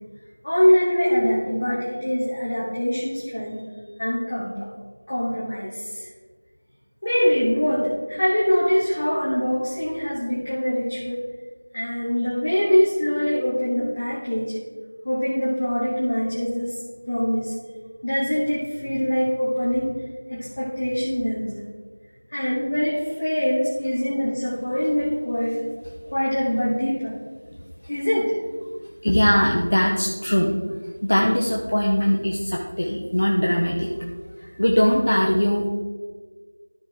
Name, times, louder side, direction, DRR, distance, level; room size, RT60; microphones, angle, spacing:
voice 1, 0.4-4.7 5.1-6.1 7.0-11.2 11.7-14.6 15.0-16.8 17.1-17.5 18.0-19.9 20.3-21.5 22.3-25.6 26.1-27.1 27.9-28.4, equal, 25° left, -7 dB, 1.2 m, -23 dB
voice 2, 29.0-30.6 31.0-33.9 34.4-35.7, equal, 55° left, -1 dB, 0.9 m, -21 dB
13.5 x 4.7 x 3.8 m, 1.5 s
figure-of-eight pair, 175°, 0 cm